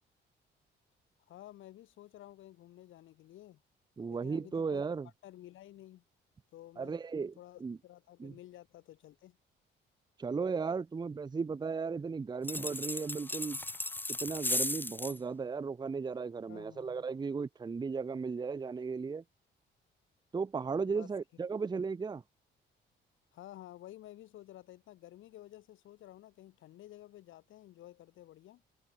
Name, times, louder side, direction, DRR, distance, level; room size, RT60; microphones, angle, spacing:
voice 1, 1.3-3.6 4.1-4.9 5.2-6.0 6.5-7.0 7.4-9.4 16.5-17.1 20.9-21.1 23.3-28.6, left 14 dB, 80° left, 1.8 m, -52 dB
voice 2, 4.0-5.1 6.8-7.3 7.6-7.8 8.2-8.4 10.2-13.6 14.1-19.2 20.3-22.2, right 5 dB, 20° right, 0.6 m, -35 dB
sound 1, 12.4-15.2, left 2 dB, 10° left, 0.9 m, -36 dB
cardioid pair, 90°, 20 cm